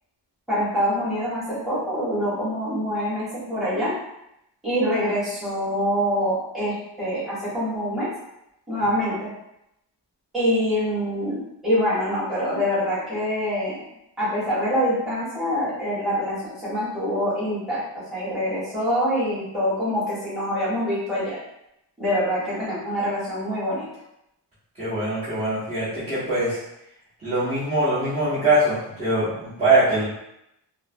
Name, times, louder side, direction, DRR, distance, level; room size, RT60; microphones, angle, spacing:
voice 1, 0.5-3.9 4.6-8.1 8.7-9.3 10.3-13.8 14.2-17.8 18.1-21.3 22.0-23.9, equal, ahead, -12 dB, 1.5 m, -25 dB
voice 2, 24.8-26.6 27.2-30.0, right 2 dB, 15° right, -16 dB, 1.4 m, -22 dB
4.5 x 2.2 x 2.2 m, 0.83 s
wide cardioid pair, 160°, 44 cm